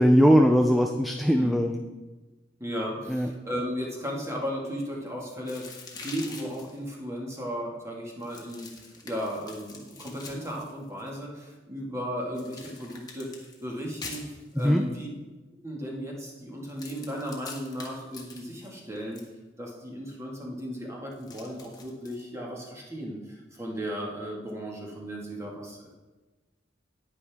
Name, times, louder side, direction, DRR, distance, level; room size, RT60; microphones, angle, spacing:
voice 1, 0.0-1.8 3.1-3.3 14.6-14.8, equal, ahead, 3 dB, 0.5 m, -20 dB
voice 2, 2.6-15.1 15.6-19.2 19.6-25.9, equal, 15° right, -2 dB, 2.0 m, -35 dB
sound 1, 5.5-6.8 8.2-11.1 12.3-14.8 16.6-19.3 21.1-22.2, left 4 dB, 20° left, 1.6 m, -45 dB
10.0 x 9.6 x 3.6 m, 1.2 s
head